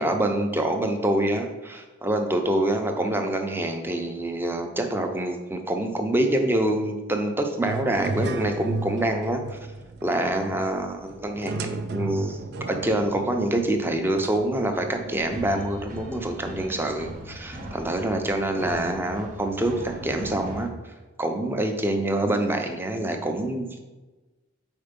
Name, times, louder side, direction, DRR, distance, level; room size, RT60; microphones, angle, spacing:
voice 1, 0.0-9.6 10.0-12.4 12.7-20.9 21.2-23.8, right 1 dB, 10° right, 4 dB, 0.6 m, -26 dB
sound 1, 7.7-15.2, right 2 dB, 60° right, 0.5 m, -34 dB
sound 2, 15.1-20.7, equal, 40° right, 0.9 m, -39 dB
4.7 x 4.5 x 5.2 m, 1.2 s
head